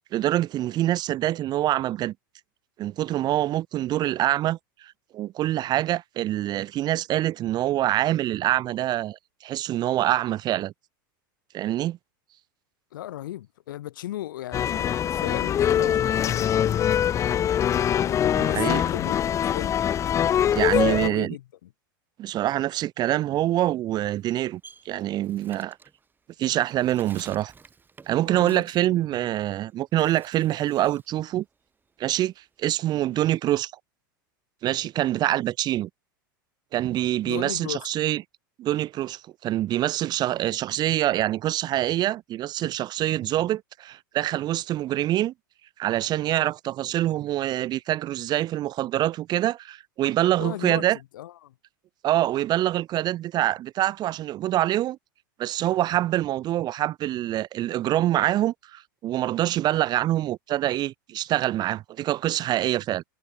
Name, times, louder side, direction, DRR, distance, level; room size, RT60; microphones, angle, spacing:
voice 1, 0.1-2.1 2.8-10.7 11.5-12.0 18.4-18.8 20.5-21.3 22.2-25.8 26.4-27.5 28.1-31.4 32.0-33.7 34.6-35.9 36.7-38.2 38.6-45.3 45.8-51.0 52.0-55.0 55.4-63.0, right 13 dB, 40° right, 1.1 m, -25 dB
voice 2, 12.9-17.6 18.0-19.8 20.3-21.7 28.3-29.1 37.2-38.0 50.4-50.9 51.1-51.5, left 14 dB, 75° left, 5.6 m, -37 dB
sound 1, 14.5-21.1, left 9 dB, 30° left, 0.5 m, -23 dB
Bird, 24.1-29.6 29.9-31.2 31.5-33.2, right 5 dB, 20° right, 7.6 m, -53 dB
hypercardioid pair, 100°, 11 cm